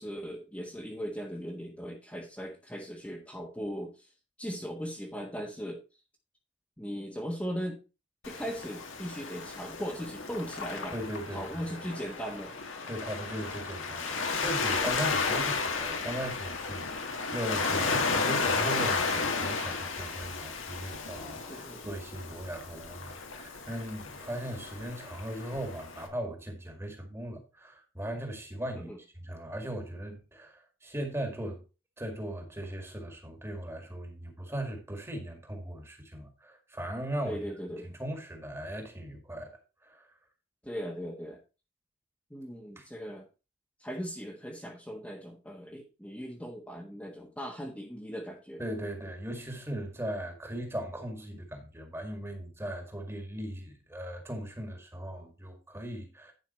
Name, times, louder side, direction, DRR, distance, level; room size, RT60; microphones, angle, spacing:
voice 1, 0.0-4.1 4.4-5.8 6.8-7.8 8.2-11.0 11.3-12.5 21.5-21.8 28.8-29.0 37.2-37.9 40.6-41.4 42.3-43.3 43.8-48.6, equal, 5° left, 1.3 m, -38 dB
Waves surf, 8.2-26.1, left 4 dB, 70° left, 1.8 m, -33 dB
voice 2, 10.9-11.6 12.9-28.9 29.2-31.6 32.0-37.4 37.8-39.5 39.8-40.1 42.8-42.9 48.6-56.3, right 1 dB, 10° right, 1.9 m, -38 dB
11.0 x 5.5 x 4.3 m
head